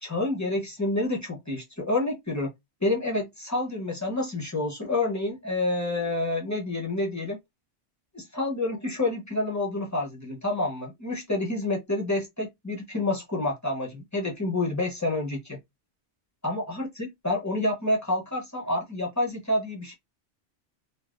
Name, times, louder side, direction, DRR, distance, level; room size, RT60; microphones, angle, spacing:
voice 1, 0.0-2.5 2.8-7.4 8.1-15.6 16.4-19.9, left 2 dB, 25° left, 0.4 m, -28 dB
3.2 x 2.1 x 2.3 m
omnidirectional pair, 1.2 m